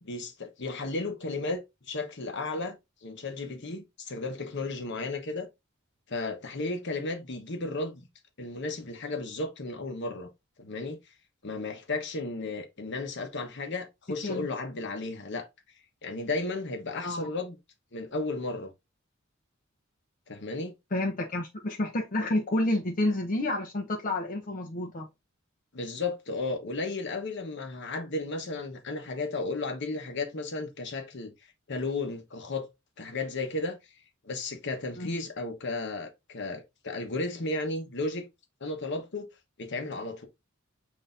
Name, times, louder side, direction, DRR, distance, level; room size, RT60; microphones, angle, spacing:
voice 1, 0.0-5.5 6.1-8.1 8.4-10.3 10.6-11.0 11.4-15.5 16.0-17.6 17.9-18.7 20.3-20.7 25.7-31.3 31.7-32.7 33.0-33.8 34.2-38.3 38.6-39.3 39.6-40.3, left 3 dB, 60° left, 1.0 m, -34 dB
voice 2, 20.9-25.1 35.0-35.1, left 1 dB, 40° left, 0.7 m, -29 dB
7.6 x 2.7 x 2.5 m
head